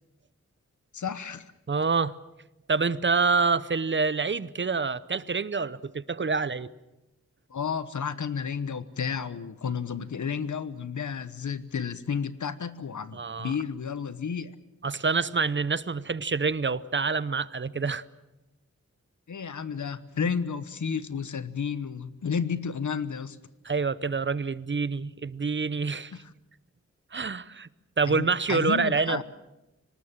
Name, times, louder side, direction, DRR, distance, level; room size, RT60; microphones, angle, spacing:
voice 1, 0.9-1.5 7.5-14.5 19.3-23.4 26.1-26.3 28.0-29.2, left 6 dB, 80° left, 1.1 m, -32 dB
voice 2, 1.7-2.1 2.7-6.7 13.1-13.5 14.8-18.0 23.6-26.1 27.1-27.7 28.0-29.2, right 4 dB, 40° right, 0.7 m, -27 dB
25.5 x 19.0 x 7.4 m
wide cardioid pair, 100°, 29 cm